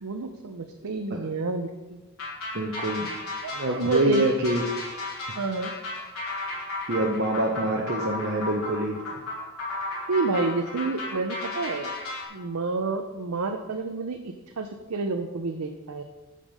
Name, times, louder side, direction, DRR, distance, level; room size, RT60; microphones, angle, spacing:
voice 1, 0.0-2.0 3.4-4.3 5.4-5.7 10.1-11.9 12.3-16.0, right 3 dB, 85° right, 5 dB, 0.7 m, -29 dB
sound 1, 2.2-12.3, left 2 dB, 75° left, 3.5 m, -34 dB
voice 2, 2.5-3.1 3.5-4.6 6.9-9.0, right 1 dB, 50° right, 0 dB, 0.9 m, -25 dB
8.8 x 6.7 x 5.3 m, 1.2 s
head